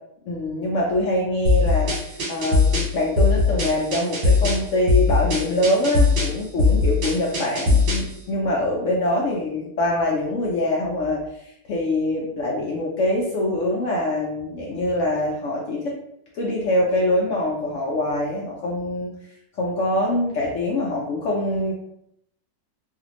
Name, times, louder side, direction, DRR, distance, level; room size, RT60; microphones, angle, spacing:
voice 1, 0.3-15.9 16.3-19.1 19.6-21.7, left 1 dB, 70° left, -3 dB, 0.7 m, -24 dB
sound 1, 1.4-8.1, left 3 dB, 80° right, 1.8 m, -20 dB
3.3 x 2.4 x 2.9 m, 0.77 s
omnidirectional pair, 1.9 m